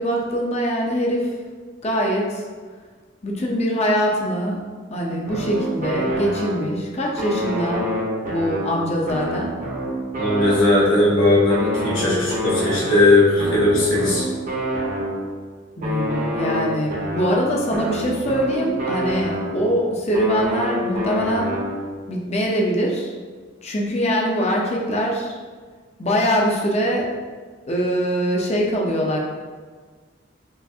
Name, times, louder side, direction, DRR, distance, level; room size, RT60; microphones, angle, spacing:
voice 1, 0.0-1.3 1.8-2.5 3.2-4.6 4.9-7.9 8.3-9.5 15.8-21.6 22.1-23.1 23.6-25.4 26.0-27.1 27.7-29.2, equal, 30° left, -2 dB, 0.6 m, -23 dB
sound 1, 5.3-6.8 7.2-11.1 11.5-15.4 15.8-19.8 20.1-22.0, equal, 40° right, 0.8 m, -27 dB
voice 2, 10.2-14.2, left 2 dB, 70° left, -8 dB, 1.3 m, -18 dB
5.5 x 2.5 x 2.7 m, 1.5 s
head